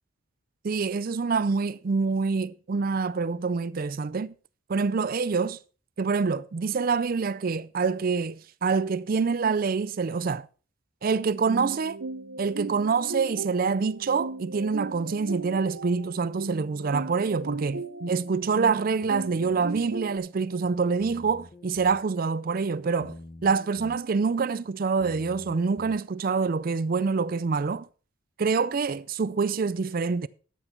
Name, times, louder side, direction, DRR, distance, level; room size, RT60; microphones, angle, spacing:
voice 1, 0.6-4.3 4.7-5.6 6.0-10.5 11.0-12.0 12.4-23.2 23.4-27.9 28.4-30.3, right 5 dB, 45° right, 0.4 m, -26 dB
sound 1, 11.5-20.2, right 3 dB, 75° right, 0.9 m, -36 dB
sound 2, 19.0-20.0 21.0-22.0 23.0-24.0 25.0-26.0, left 1 dB, 30° left, 0.9 m, -46 dB
12.5 x 8.1 x 4.3 m
head